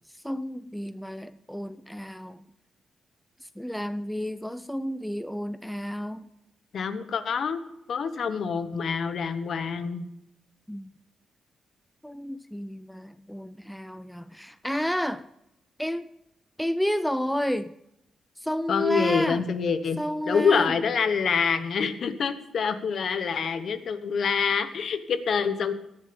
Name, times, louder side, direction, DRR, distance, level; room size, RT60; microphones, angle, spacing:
voice 1, 0.1-2.4 3.4-6.3 10.7-10.9 12.0-15.3 15.8-16.1 16.6-17.7 18.4-19.4 20.0-20.7, equal, ahead, 13 dB, 0.3 m, -31 dB
voice 2, 6.7-7.6 7.9-10.0 18.7-20.0 20.3-25.7, left 6 dB, 50° left, 10 dB, 1.0 m, -26 dB
17.5 x 6.9 x 5.2 m, 0.84 s
wide cardioid pair, 155°, 0 cm